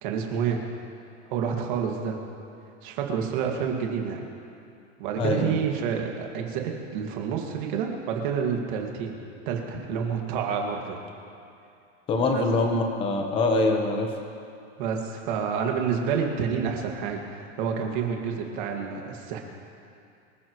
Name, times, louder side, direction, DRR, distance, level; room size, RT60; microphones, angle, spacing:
voice 1, 0.0-0.6 1.3-2.2 2.8-4.3 5.0-9.2 9.5-11.0 12.3-12.4 14.8-19.4, right 7 dB, 40° right, 1 dB, 2.1 m, -28 dB
voice 2, 5.2-5.6 12.1-14.1, left 2 dB, 15° left, 3 dB, 1.1 m, -24 dB
25.5 x 14.5 x 3.2 m, 2.6 s
supercardioid pair, 175°, 37 cm